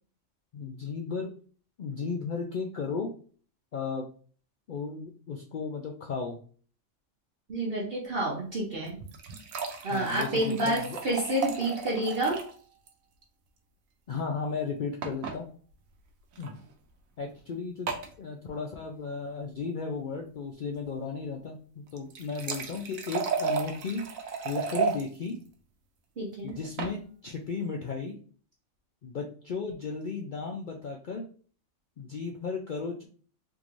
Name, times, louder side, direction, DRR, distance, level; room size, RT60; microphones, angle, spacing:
voice 1, 0.5-1.3 1.8-3.1 3.7-4.1 4.7-6.4 9.9-11.0 14.1-15.5 16.4-16.6 17.2-17.9 18.2-24.0 24.4-25.4 26.4-28.2 29.0-31.2 32.0-33.0, left 4 dB, 70° left, 0 dB, 0.4 m, -35 dB
voice 2, 7.5-9.0 9.8-12.4 26.2-26.6, right 1 dB, 50° right, -3 dB, 1.0 m, -29 dB
sound 1, 8.8-12.6 12.9-13.0 13.2-13.3 15.0-15.4 16.3-16.5 17.9-18.1 21.9-25.0 26.5-27.0, right 6 dB, 85° right, 1.1 m, -34 dB
3.7 x 3.0 x 2.5 m, 0.42 s
omnidirectional pair, 1.4 m